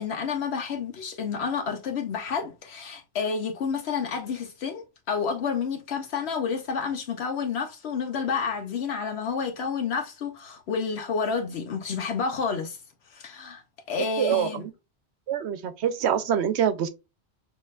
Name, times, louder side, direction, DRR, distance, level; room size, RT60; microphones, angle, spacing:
voice 1, 0.0-12.8 13.1-13.6 13.9-14.6, left 5 dB, 75° left, 1.0 m, -30 dB
voice 2, 14.2-14.7 15.3-16.9, right 9 dB, 85° right, 0.9 m, -25 dB
6.4 x 2.8 x 2.4 m
omnidirectional pair, 1.1 m